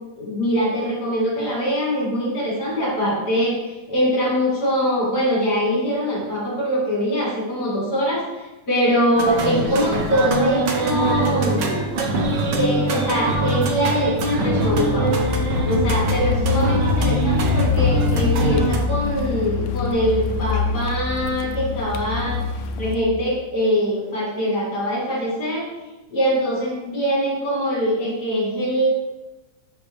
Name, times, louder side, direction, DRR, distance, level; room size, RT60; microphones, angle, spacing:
voice 1, 0.2-11.8 12.5-15.2 15.6-22.4 22.8-25.7 26.1-28.9, equal, 30° left, -4 dB, 2.7 m, -23 dB
sound 1, 9.1-18.8, right 2 dB, 90° right, 0.9 m, -23 dB
Car, 13.6-23.0, left 5 dB, 80° left, 2.2 m, -24 dB
7.4 x 6.0 x 6.8 m, 1.1 s
omnidirectional pair, 3.8 m